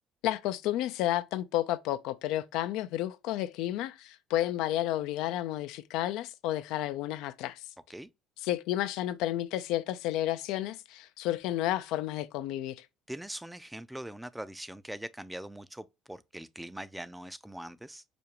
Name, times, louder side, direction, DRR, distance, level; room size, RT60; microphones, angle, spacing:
voice 1, 0.2-7.6 8.4-12.9, left 14 dB, 80° left, 0.3 m, -31 dB
voice 2, 13.1-18.0, right 1 dB, 5° right, 0.4 m, -42 dB
5.0 x 2.3 x 2.8 m
supercardioid pair, 95°, 0 cm